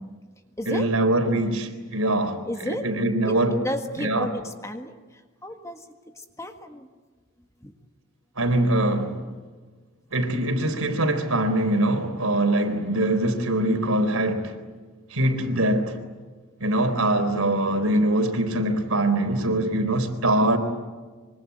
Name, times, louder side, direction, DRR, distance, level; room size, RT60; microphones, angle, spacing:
voice 1, 0.7-3.6 4.0-4.3 8.4-9.2 10.1-14.6 15.1-16.0 16.6-20.6, right 1 dB, 80° right, 3.9 m, -23 dB
voice 2, 2.4-2.9 3.2-4.9 5.4-5.8 6.4-6.9 7.6-7.7 17.3-17.4, left 1 dB, 15° left, 1.7 m, -32 dB
25.5 x 25.0 x 9.3 m
head